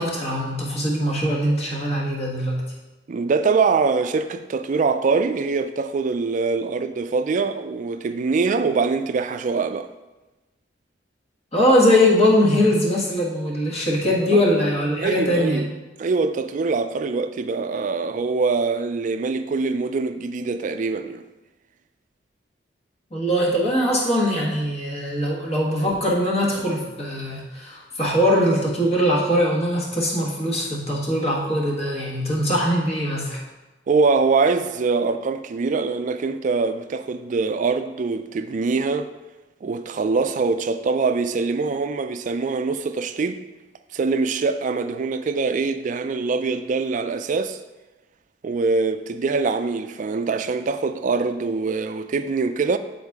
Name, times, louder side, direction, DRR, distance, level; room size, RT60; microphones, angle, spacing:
voice 1, 0.0-2.6 11.5-15.7 23.1-33.4, equal, 35° left, 1.4 m, -21 dB
voice 2, 3.1-9.9 14.3-14.4 15.0-15.7 16.0-21.2 33.9-39.1 39.6-43.4 43.9-47.6 48.4-52.8, right 4 dB, 45° right, 0.3 m, -23 dB
8.3 x 4.0 x 3.5 m
head